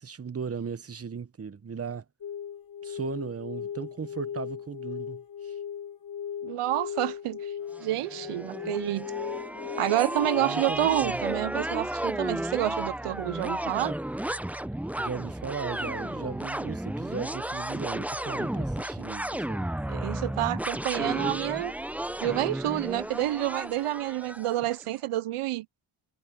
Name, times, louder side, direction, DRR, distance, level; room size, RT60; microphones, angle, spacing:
voice 1, 0.0-2.0 2.8-5.5 10.4-11.2 15.0-19.7, right 6 dB, 30° right, 0.9 m, -37 dB
sound 1, 2.2-10.6, left 8 dB, 45° left, 2.1 m, -38 dB
voice 2, 6.4-7.5 7.8-9.1 9.8-13.9 19.9-21.7 22.2-25.7, right 15 dB, 85° right, 0.7 m, -29 dB
sound 2, 7.8-24.8, right 1 dB, 5° right, 0.5 m, -33 dB
cardioid pair, 70°, 50 cm